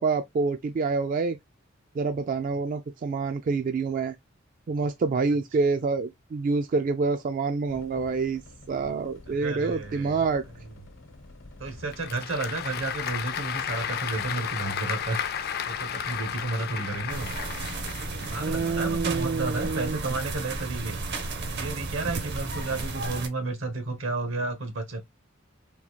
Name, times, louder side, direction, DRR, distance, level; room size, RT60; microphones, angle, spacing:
voice 1, 0.0-1.4 2.0-4.2 4.7-8.4 8.7-10.4 18.4-20.0, right 4 dB, 45° right, 0.3 m, -27 dB
sound 1, 7.7-23.2, left 1 dB, 80° left, 0.9 m, -49 dB
voice 2, 9.3-10.2 11.6-15.3 15.6-17.3 18.1-21.0 21.5-25.0, right 3 dB, 75° right, 1.0 m, -32 dB
Applause / Crowd, 11.7-18.4, left 8 dB, 50° left, 0.4 m, -33 dB
sound 2, 17.1-23.3, right 3 dB, 60° right, 0.7 m, -34 dB
3.6 x 2.3 x 2.9 m
head